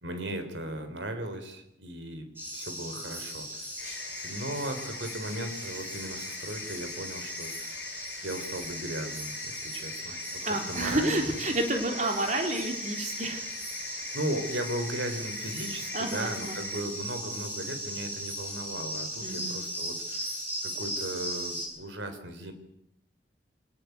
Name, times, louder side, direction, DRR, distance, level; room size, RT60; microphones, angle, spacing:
voice 1, 0.0-2.3 2.5-3.7 4.2-7.8 8.2-11.4 14.1-22.5, right 1 dB, 90° right, 8 dB, 3.9 m, -37 dB
sound 1, 2.4-21.7, equal, 10° right, 7.8 m, -38 dB
sound 2, 3.8-16.8, left 5 dB, 60° left, 3.4 m, -44 dB
voice 2, 10.4-13.4 15.9-16.6 19.2-19.6, right 1 dB, 40° right, 3 dB, 3.5 m, -30 dB
25.0 x 19.0 x 8.2 m, 0.76 s
head